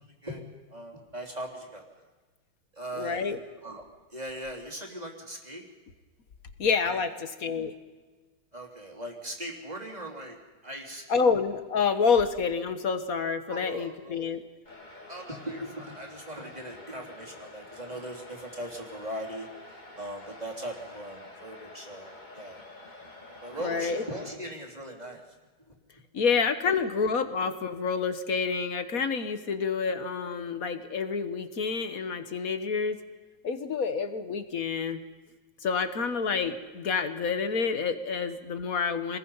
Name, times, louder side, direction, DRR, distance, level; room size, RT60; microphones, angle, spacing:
voice 1, 0.0-2.1 2.7-3.3 3.6-3.8 4.1-5.7 6.8-7.0 8.5-10.4 10.6-11.2 13.5-14.2 15.1-19.5 20.0-22.6 23.4-25.2 25.7-25.8 30.2-30.3 38.1-38.2, right 1 dB, 20° right, -1 dB, 3.3 m, -39 dB
voice 2, 2.9-3.4 6.6-7.7 11.1-14.4 23.6-24.0 26.1-33.0 33.4-35.0 35.6-39.2, left 5 dB, 45° left, 9 dB, 1.5 m, -28 dB
sound 1, 14.7-24.3, left 2 dB, 20° left, 2.3 m, -48 dB
27.0 x 20.5 x 5.6 m, 1.3 s
omnidirectional pair, 2.3 m